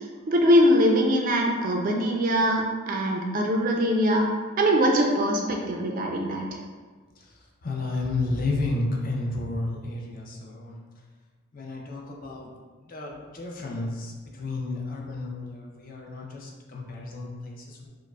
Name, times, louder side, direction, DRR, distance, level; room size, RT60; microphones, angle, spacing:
voice 1, 0.3-4.3 4.6-6.4, equal, 40° right, 1 dB, 0.3 m, -22 dB
voice 2, 7.6-10.8 11.5-12.5 12.8-17.9, left 2 dB, 40° left, -1 dB, 0.4 m, -32 dB
4.7 x 2.0 x 2.2 m, 1.4 s
head